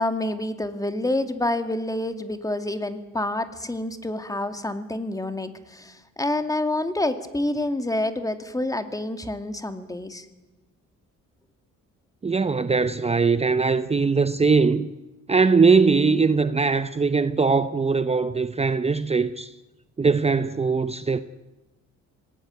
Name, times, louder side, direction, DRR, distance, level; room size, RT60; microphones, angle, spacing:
voice 1, 0.0-10.3, left 1 dB, 10° left, 2.3 m, -28 dB
voice 2, 12.2-14.9 15.3-19.5 20.0-21.2, right 4 dB, 20° right, 0.8 m, -21 dB
25.5 x 18.5 x 9.4 m
cardioid pair, 90°, 30 cm